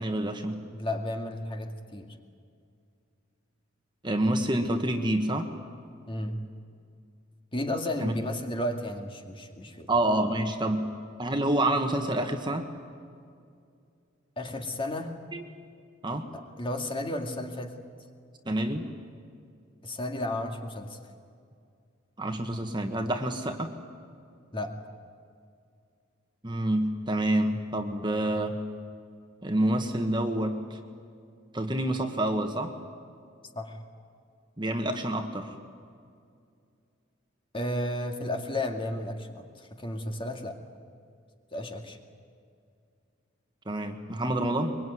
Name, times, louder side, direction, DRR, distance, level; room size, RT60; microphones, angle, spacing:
voice 1, 0.0-0.6 4.0-5.5 8.0-8.1 9.9-10.9 11.2-12.7 15.3-15.4 16.0-16.3 18.5-18.9 22.2-23.7 26.4-28.6 29.4-30.8 31.5-32.7 34.6-35.5 43.7-44.8, right 1 dB, 25° right, 5 dB, 1.7 m, -28 dB
voice 2, 0.7-2.2 6.1-6.4 7.5-10.0 14.4-15.2 16.3-17.8 19.8-21.0 24.5-24.7 33.5-33.8 37.5-40.6 41.5-42.0, left 1 dB, 25° left, 3 dB, 2.2 m, -33 dB
23.5 x 23.0 x 9.6 m, 2.3 s
head